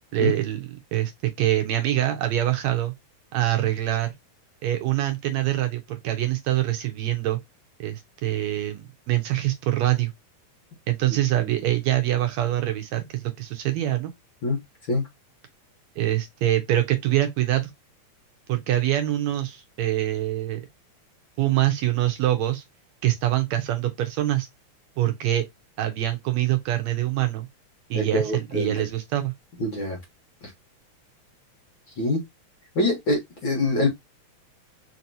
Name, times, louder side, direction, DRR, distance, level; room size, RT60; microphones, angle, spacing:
voice 1, 0.1-2.9 3.3-4.1 4.6-7.4 7.8-10.1 10.9-14.1 16.0-17.7 18.5-20.6 21.4-22.6 23.0-24.5 25.0-25.4 25.8-27.5 27.9-29.3, right 14 dB, 75° right, 1.8 m, -24 dB
voice 2, 27.9-28.8 29.6-30.0 32.0-32.2 32.7-33.9, left 1 dB, 55° left, 1.4 m, -24 dB
4.6 x 2.9 x 2.5 m
omnidirectional pair, 3.5 m